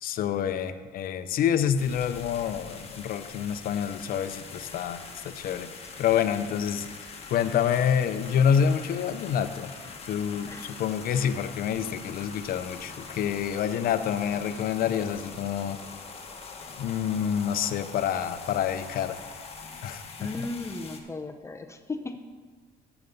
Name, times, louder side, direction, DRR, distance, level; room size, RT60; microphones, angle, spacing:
voice 1, 0.0-6.9 7.3-9.7 10.1-15.8 16.8-19.2 19.8-20.5, left 8 dB, 60° left, 10 dB, 0.6 m, -27 dB
sound 1, 1.8-21.0, left 4 dB, 35° left, 1.3 m, -43 dB
voice 2, 20.2-22.2, left 2 dB, 15° left, 5 dB, 0.6 m, -36 dB
9.4 x 7.0 x 5.4 m, 1.4 s
cardioid pair, 110°, 17 cm